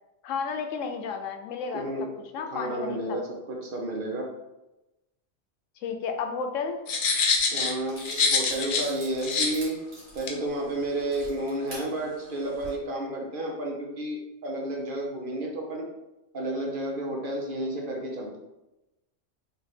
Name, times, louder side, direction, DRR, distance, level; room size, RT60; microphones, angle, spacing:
voice 1, 0.2-1.8 2.3-3.2 5.8-6.8, left 5 dB, 85° left, 6 dB, 1.0 m, -32 dB
voice 2, 1.7-2.1 2.5-4.3 7.5-9.8 10.1-15.9 16.3-18.4, right 1 dB, 50° right, -1 dB, 1.0 m, -31 dB
sound 1, 6.9-8.9 9.2-9.5 10.3-10.4, left 4 dB, 55° left, 0.7 m, -25 dB
sound 2, 7.3-7.4 7.9-11.8 12.4-12.7, right 1 dB, 90° right, 2.0 m, -45 dB
3.4 x 3.0 x 4.1 m, 0.97 s
omnidirectional pair, 1.3 m